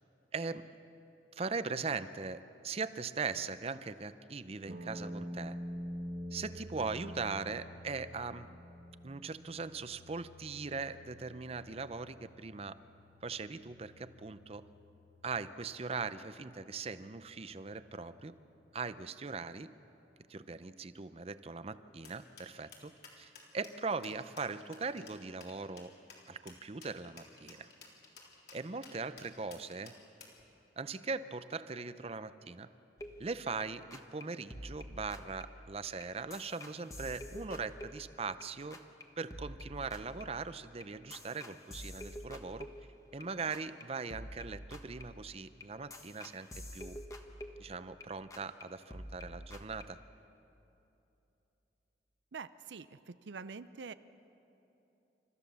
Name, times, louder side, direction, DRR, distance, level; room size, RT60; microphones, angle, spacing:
voice 1, 0.3-0.7 1.3-5.6 6.3-8.5 9.0-12.8 13.2-14.7 15.2-18.4 18.7-19.7 20.3-25.9 26.3-27.7 28.5-29.9 30.8-32.7 33.2-38.8 39.2-42.7 43.1-46.5 46.7-47.0 47.6-50.0, right 4 dB, 35° right, 13 dB, 0.6 m, -40 dB
sound 1, 4.7-18.7, equal, 50° right, 1.5 m, -48 dB
sound 2, 22.0-30.4, left 5 dB, 60° left, 3.6 m, -55 dB
sound 3, 33.0-33.6 33.9-34.2 34.5-38.4 38.7-39.0 39.3-43.3 43.5-43.8 44.1-48.1 48.3-48.6 48.9-49.8, equal, 20° left, 1.3 m, -48 dB
voice 2, 52.3-53.9, right 5 dB, 85° right, 13 dB, 0.6 m, -45 dB
29.5 x 14.0 x 6.9 m, 2.9 s
head